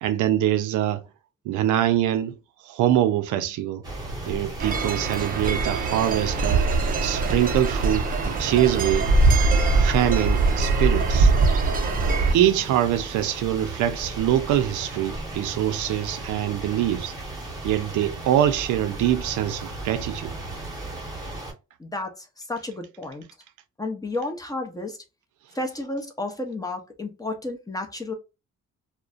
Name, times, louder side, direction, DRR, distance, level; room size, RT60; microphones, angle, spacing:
voice 1, 0.0-1.0 1.5-2.3 2.6-3.8 4.3-9.1 9.7-11.3 12.3-17.1 17.6-20.3, right 12 dB, 80° right, 0.5 m, -24 dB
sound 1, 3.8-21.5, right 2 dB, 10° right, 1.0 m, -35 dB
sound 2, 4.6-12.3, right 3 dB, 30° right, 0.5 m, -22 dB
voice 2, 21.8-23.2 23.8-25.0 25.5-28.1, left 2 dB, 10° left, 0.6 m, -32 dB
2.4 x 2.1 x 2.4 m
cardioid pair, 90°, 30 cm